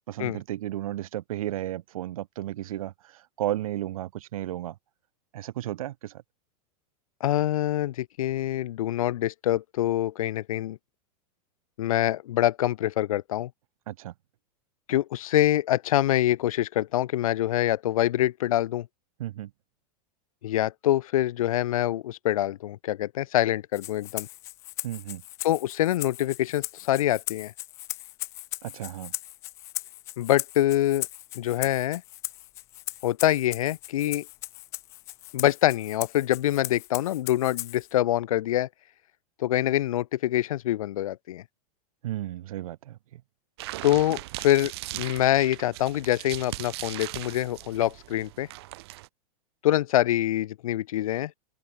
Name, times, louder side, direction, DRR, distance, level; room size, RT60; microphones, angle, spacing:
voice 1, 0.1-4.8 5.3-6.2 13.9-14.1 19.2-19.5 24.8-25.2 28.6-29.1 42.0-43.2, right 13 dB, 60° right, 2.3 m, -33 dB
voice 2, 7.2-10.8 11.8-13.5 14.9-18.9 20.4-24.3 25.4-27.5 30.2-31.1 31.3-32.0 33.0-34.3 35.3-38.7 39.4-41.4 43.8-48.5 49.6-51.3, left 13 dB, 60° left, 2.2 m, -25 dB
Rattle (instrument), 23.7-37.9, left 17 dB, 15° left, 0.4 m, -38 dB
sound 1, 43.6-49.1, right 19 dB, 40° right, 1.8 m, -39 dB
supercardioid pair, 180°, 20 cm